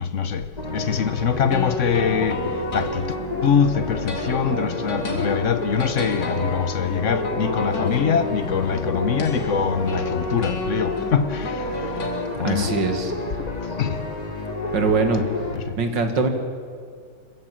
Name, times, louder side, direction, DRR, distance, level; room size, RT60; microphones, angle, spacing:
voice 1, 0.0-3.1 3.4-12.8 13.4-14.1 15.5-15.8, left 7 dB, 50° left, 1.2 m, -24 dB
sound 1, 0.6-15.6, left 2 dB, 25° left, 1.9 m, -30 dB
sound 2, 1.4-12.4, left 2 dB, 85° left, 2.9 m, -31 dB
voice 2, 12.4-13.1 14.7-15.2 15.8-16.3, right 4 dB, 85° right, 2.5 m, -22 dB
26.5 x 15.0 x 7.6 m
omnidirectional pair, 1.9 m